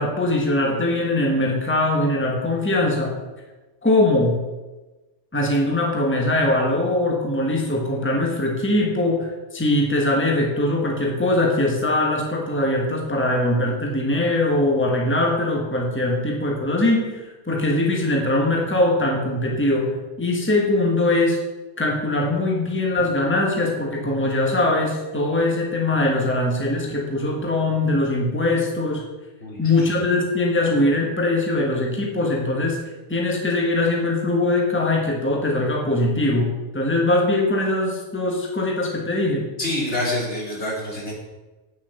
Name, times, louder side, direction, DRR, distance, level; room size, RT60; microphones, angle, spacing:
voice 1, 0.0-3.2 3.8-4.4 5.3-21.4 21.8-29.0 29.6-32.8 33.1-36.5 36.7-39.4, left 2 dB, 10° left, -1 dB, 1.5 m, -21 dB
voice 2, 29.4-29.9 39.6-41.1, left 1 dB, 70° left, -4 dB, 3.4 m, -27 dB
8.8 x 7.2 x 6.8 m, 1.2 s
omnidirectional pair, 1.2 m